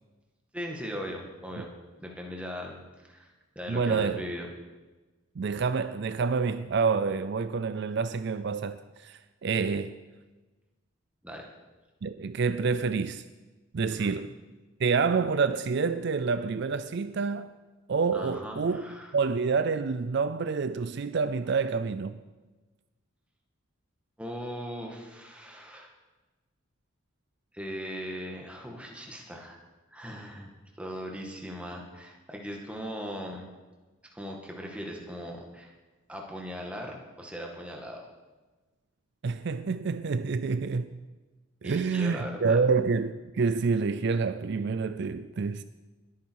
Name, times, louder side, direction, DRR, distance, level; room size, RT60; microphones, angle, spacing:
voice 1, 0.5-1.7 2.0-4.5 11.2-11.5 13.9-14.2 18.1-19.1 24.2-25.9 27.5-29.6 29.9-30.5 30.8-33.5 34.1-35.7 36.1-38.0 41.6-42.6, equal, 5° right, 1.8 m, -39 dB
voice 2, 3.7-4.2 5.4-9.9 12.0-13.2 13.7-14.3 14.8-17.5 17.9-18.8 19.1-22.2 39.2-41.0 41.6-45.6, right 5 dB, 55° right, 0.4 m, -28 dB
21.0 x 9.4 x 4.7 m
head